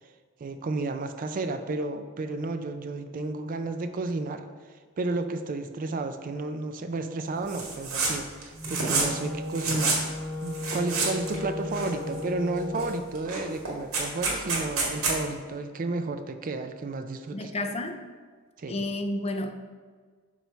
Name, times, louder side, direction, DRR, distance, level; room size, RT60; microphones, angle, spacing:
voice 1, 0.4-4.5 5.0-10.0 10.4-17.5 18.6-18.8, right 3 dB, 40° right, 0.4 m, -32 dB
sound 1, 7.5-8.1 8.4-9.2 9.5-10.0 10.5-11.4 11.7-12.3 12.7-12.9 13.2-15.2, right 4 dB, 80° right, 1.7 m, -28 dB
Wind instrument woodwind instrument, 8.5-13.0, left 2 dB, 20° right, 1.5 m, -35 dB
voice 2, 17.3-18.0 18.7-19.5, left 1 dB, 30° left, 0.4 m, -31 dB
6.2 x 4.0 x 4.5 m
head